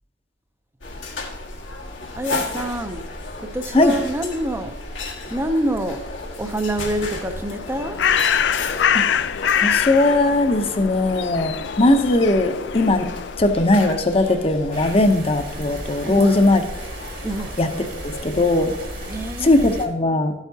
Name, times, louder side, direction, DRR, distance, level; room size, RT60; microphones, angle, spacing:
sound 1, 0.8-19.3, left 2 dB, 90° left, 1.5 m, -34 dB
voice 1, 2.2-3.1 3.4-4.8 5.3-6.0 6.4-8.0 16.0-16.3 17.2-17.6 19.0-19.7, right 1 dB, 15° right, 8 dB, 0.6 m, -26 dB
Bird, 7.5-13.5, left 8 dB, 65° left, 0.4 m, -24 dB
voice 2, 8.9-9.3 9.6-13.1 13.4-16.6 17.6-17.7 18.0-18.7 19.4-20.3, left 2 dB, 30° left, 7 dB, 0.7 m, -19 dB
sound 2, 14.7-19.9, right 1 dB, 50° right, 1.8 m, -36 dB
12.5 x 8.1 x 2.8 m, 1.0 s
head